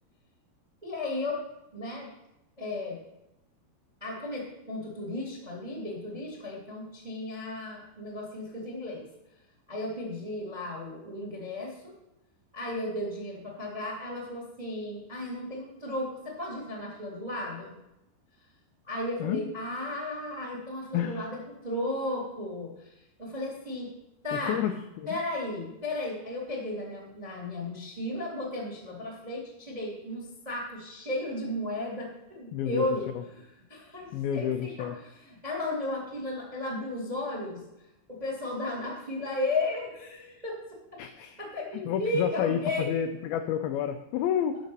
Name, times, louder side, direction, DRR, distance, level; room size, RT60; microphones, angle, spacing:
voice 1, 0.8-1.4 1.7-2.1 2.6-3.0 4.0-9.0 9.7-11.9 12.5-17.8 18.9-22.9 23.2-23.9 24.2-24.6 25.1-37.6 38.1-41.0 41.4-42.9, left 1 dB, 20° right, -2 dB, 1.0 m, -34 dB
voice 2, 20.9-21.3 24.3-25.2 32.5-32.9 34.1-35.0 41.0-41.4 41.7-44.6, left 9 dB, 85° left, 7 dB, 2.1 m, -30 dB
12.0 x 5.1 x 5.4 m, 0.89 s
omnidirectional pair, 4.9 m